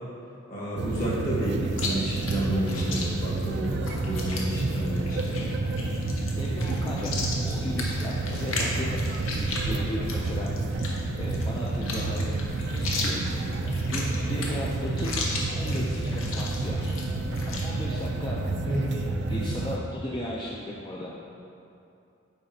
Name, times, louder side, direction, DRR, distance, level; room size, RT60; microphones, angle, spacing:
voice 1, 0.5-5.5 18.7-18.8, right 1 dB, 45° left, -6 dB, 1.5 m, -31 dB
sound 1, 0.8-19.8, right 2 dB, 60° right, 0.4 m, -29 dB
Chewing mastication, 1.7-17.7, left 3 dB, 90° left, 0.8 m, -36 dB
voice 2, 6.4-7.1 7.4-10.5 11.2-12.3 12.6-13.2 13.6-15.1 15.5-16.9 17.5-21.1, left 1 dB, 20° left, -5 dB, 0.4 m, -36 dB
8.8 x 4.2 x 2.7 m, 2.7 s
head